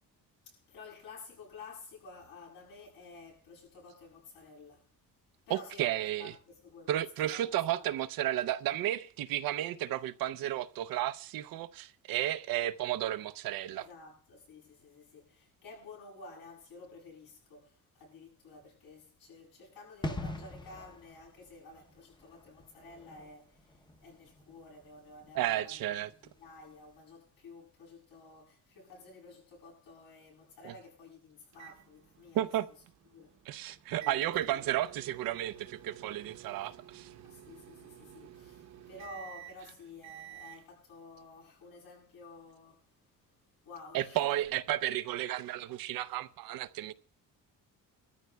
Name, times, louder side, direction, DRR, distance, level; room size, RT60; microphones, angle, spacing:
voice 1, 0.4-4.9 5.5-7.0 7.3-7.9 13.7-25.8 26.4-32.4 33.1-33.3 34.0-34.7 37.2-42.8 43.6-44.4, left 3 dB, 85° left, 7.6 m, -52 dB
voice 2, 5.5-6.3 6.9-13.9 25.3-26.1 30.6-30.7 32.3-32.7 33.5-37.1 43.9-46.9, right 13 dB, 80° right, 0.6 m, -33 dB
sound 1, 20.0-26.5 26.8-27.0, left 2 dB, 15° left, 0.8 m, -44 dB
sound 2, 31.5-40.6, right 12 dB, 50° right, 0.9 m, -52 dB
23.5 x 13.5 x 2.3 m
cardioid pair, 135°, 34 cm